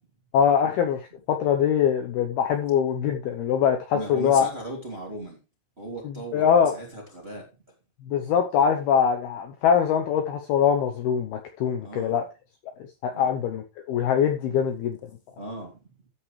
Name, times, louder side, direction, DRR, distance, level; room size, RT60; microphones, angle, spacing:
voice 1, 0.3-1.0 1.3-4.5 6.0-6.8 8.1-12.2 13.0-15.0, left 8 dB, 90° left, 2.2 m, -23 dB
voice 2, 3.9-5.4 5.8-7.5 11.8-12.2 13.1-13.3 14.5-14.7 15.4-15.8, right 1 dB, 20° right, 1.9 m, -37 dB
13.5 x 8.9 x 3.3 m
omnidirectional pair, 5.9 m